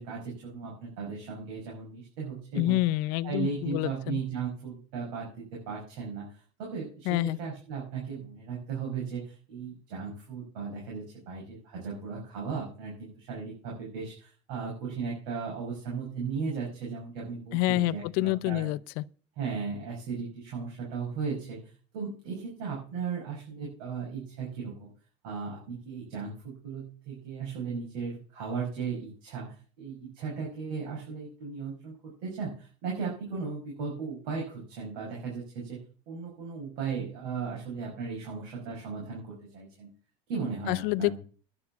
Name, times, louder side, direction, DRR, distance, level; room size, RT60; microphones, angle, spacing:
voice 1, 0.0-2.8 3.2-18.7 19.4-21.6 21.9-24.9 25.2-35.8 36.1-39.9 40.3-41.2, right 5 dB, 80° right, 5.7 m, -36 dB
voice 2, 2.5-4.2 7.1-7.4 17.5-19.0 40.7-41.2, left 17 dB, 70° left, 0.6 m, -27 dB
11.0 x 6.8 x 8.2 m
cardioid pair, 140°, 16 cm